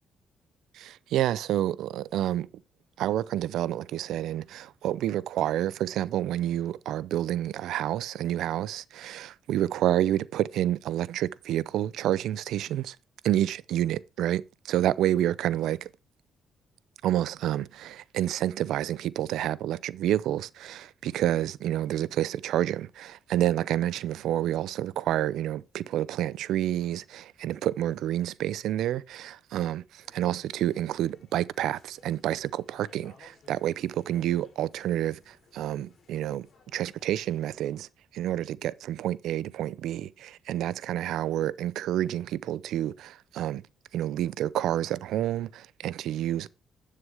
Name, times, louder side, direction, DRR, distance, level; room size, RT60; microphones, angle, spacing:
voice 1, 0.7-2.5 3.0-13.0 13.2-15.9 17.0-36.5 36.7-37.9 38.1-43.6 43.9-46.5, right 12 dB, 80° right, 0.5 m, -29 dB
sound 1, 30.0-37.7, left 4 dB, 60° left, 3.1 m, -60 dB
11.0 x 6.5 x 3.4 m
cardioid pair, 90°, 0 cm